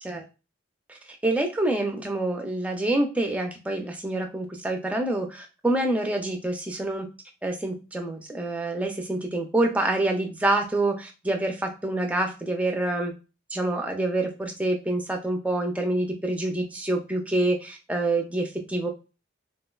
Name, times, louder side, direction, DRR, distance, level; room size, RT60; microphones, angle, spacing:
voice 1, 1.2-7.1 7.4-13.1 13.5-18.9, right 2 dB, 5° right, 3 dB, 0.3 m, -27 dB
3.7 x 2.1 x 2.2 m, 0.30 s
head